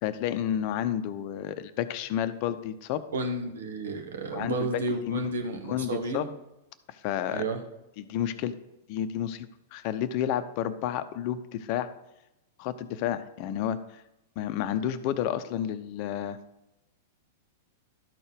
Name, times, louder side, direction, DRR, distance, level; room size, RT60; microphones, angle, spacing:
voice 1, 0.0-3.0 4.3-4.7 5.1-5.2 5.7-6.3 7.0-7.4 8.0-8.5 8.9-11.9 12.6-14.0 14.4-16.4, left 10 dB, 50° left, 12 dB, 0.6 m, -30 dB
voice 2, 3.1-6.3 7.3-7.6, right 2 dB, 75° right, 4 dB, 1.4 m, -32 dB
12.5 x 4.5 x 5.0 m, 0.93 s
hypercardioid pair, 105°, 0 cm